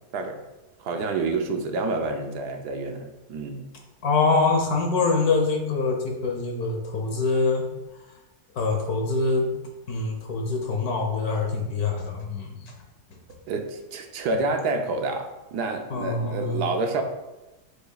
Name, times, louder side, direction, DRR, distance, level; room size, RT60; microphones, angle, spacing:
voice 1, 0.8-3.7 13.5-17.0, right 3 dB, 75° right, 5 dB, 1.3 m, -28 dB
voice 2, 4.0-7.6 8.5-9.5 9.9-12.6 15.9-16.7, left 3 dB, 65° left, 2 dB, 1.5 m, -24 dB
7.8 x 6.6 x 2.3 m, 1.1 s
omnidirectional pair, 1.8 m